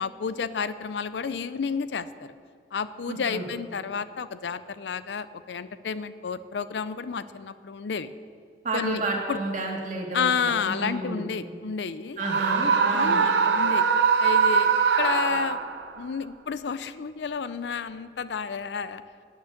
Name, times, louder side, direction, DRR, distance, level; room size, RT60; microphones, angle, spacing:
voice 1, 0.0-2.3 2.7-8.1 8.7-9.0 9.3-9.4 10.1-12.2 12.9-13.9 14.2-15.6 16.0-19.0, left 6 dB, 75° left, 14 dB, 0.5 m, -31 dB
voice 2, 3.1-3.4 8.6-11.3 12.2-13.2, right 2 dB, 45° right, 0 dB, 1.8 m, -31 dB
Screaming, 12.2-15.9, right 6 dB, 90° right, 0.7 m, -22 dB
9.5 x 9.1 x 6.5 m, 2.2 s
head